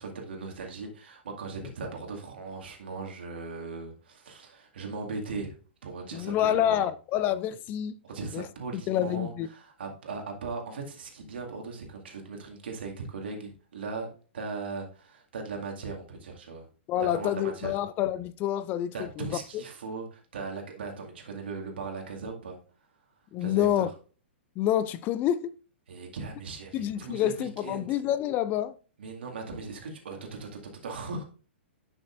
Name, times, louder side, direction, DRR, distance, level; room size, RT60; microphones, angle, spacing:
voice 1, 0.0-5.5 5.8-6.9 8.0-16.7 17.0-17.7 18.9-22.6 23.4-23.9 25.9-28.0 29.0-31.2, right 4 dB, 65° right, 2.1 m, -38 dB
voice 2, 6.1-8.0 8.3-8.5 8.9-9.5 16.9-19.2 23.3-23.9 24.6-25.5 26.7-28.7, left 11 dB, 30° left, 0.4 m, -27 dB
11.0 x 6.2 x 2.6 m
figure-of-eight pair, 110°, 6 cm